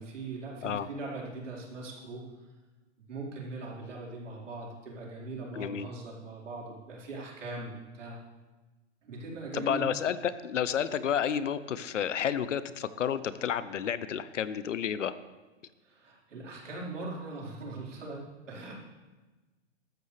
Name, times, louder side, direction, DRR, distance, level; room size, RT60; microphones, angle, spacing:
voice 1, 0.0-2.2 3.1-8.2 9.0-9.8 15.8-18.7, right 2 dB, 75° right, -4 dB, 4.6 m, -40 dB
voice 2, 5.5-5.9 9.5-15.1, left 8 dB, 75° left, 15 dB, 0.8 m, -31 dB
15.0 x 13.0 x 3.4 m, 1.2 s
hypercardioid pair, 130°, 37 cm